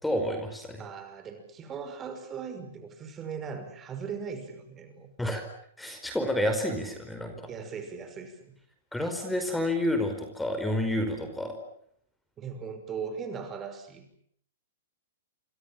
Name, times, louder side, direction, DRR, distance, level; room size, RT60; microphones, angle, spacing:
voice 1, 0.0-0.8 5.2-5.4 5.8-7.4 8.9-11.5, left 1 dB, 5° left, 6 dB, 4.8 m, -29 dB
voice 2, 0.8-5.1 7.5-8.4 12.4-14.2, right 6 dB, 20° right, 8 dB, 5.8 m, -39 dB
29.0 x 26.0 x 7.5 m, 0.66 s
hypercardioid pair, 130°, 0 cm